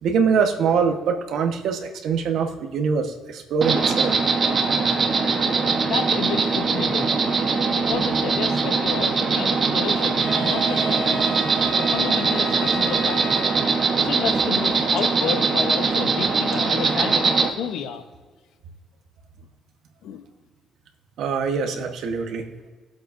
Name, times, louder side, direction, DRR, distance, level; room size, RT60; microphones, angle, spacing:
voice 1, 0.0-4.1 21.2-22.5, right 6 dB, 80° right, 5 dB, 1.2 m, -23 dB
Insect, 3.6-17.5, right 4 dB, 45° right, 1.1 m, -21 dB
voice 2, 5.8-7.1 7.7-11.2 11.8-13.4 14.0-18.0 20.0-20.2, left 8 dB, 80° left, 8 dB, 0.9 m, -31 dB
Wind instrument woodwind instrument, 10.2-14.1, right 1 dB, 55° left, 3.1 m, -34 dB
20.0 x 7.8 x 2.6 m, 1.5 s
cardioid pair, 90°, 0 cm